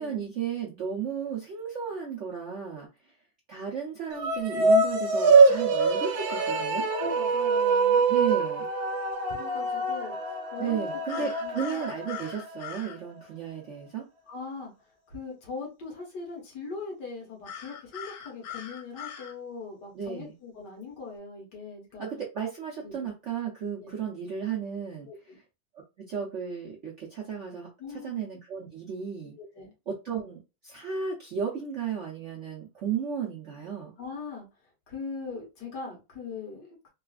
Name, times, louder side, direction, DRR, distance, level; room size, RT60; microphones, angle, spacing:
voice 1, 0.0-2.9 3.5-6.9 8.1-8.7 10.6-14.0 19.9-20.3 22.0-25.4 26.0-29.3 29.9-33.9, right 7 dB, 60° right, -2 dB, 0.8 m, -34 dB
sound 1, 4.1-12.6, right 3 dB, 80° right, 1.3 m, -24 dB
sound 2, 5.3-6.7 11.1-13.0 17.4-19.3, left 9 dB, 90° left, 1.6 m, -42 dB
voice 2, 6.9-8.1 9.3-10.2 10.5-11.9 14.3-14.7 15.1-22.1 22.8-23.1 23.8-23.9 25.1-25.4 27.8-28.2 29.4-29.7 34.0-34.4 34.9-36.9, left 4 dB, 65° left, -1 dB, 1.8 m, -40 dB
3.9 x 2.4 x 2.4 m, 0.27 s
omnidirectional pair, 2.1 m